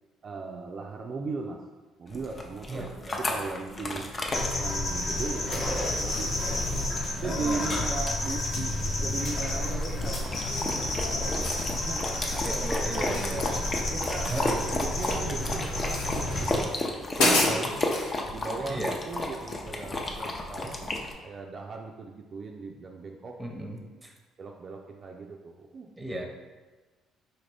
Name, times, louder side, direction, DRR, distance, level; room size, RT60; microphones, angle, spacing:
voice 1, 0.2-1.6 2.0-4.2 4.6-6.4 7.2-12.0 12.3-13.6 13.9-14.3 14.7-16.8 17.2-17.8 18.3-23.4 23.7-23.9 24.4-25.9 26.2-26.3, right 4 dB, 50° right, 1 dB, 0.3 m, -38 dB
sound 1, 2.1-21.1, left 2 dB, 35° left, 0.6 m, -34 dB
voice 2, 2.7-3.3 7.2-7.8 12.4-13.5 14.3-14.7 17.2-17.7 18.7-19.0 23.4-24.1 26.0-26.3, right 1 dB, 15° right, 2 dB, 0.7 m, -35 dB
sound 2, 4.3-16.6, left 1 dB, 55° left, 0.9 m, -30 dB
sound 3, 10.5-10.8 11.2-11.7 12.1-12.4 13.1-13.8 14.0-15.3 15.8-16.2 16.7-16.8 17.1-18.1, left 2 dB, 80° left, 0.8 m, -29 dB
4.1 x 2.5 x 3.3 m, 1.3 s
supercardioid pair, 65°, 0 cm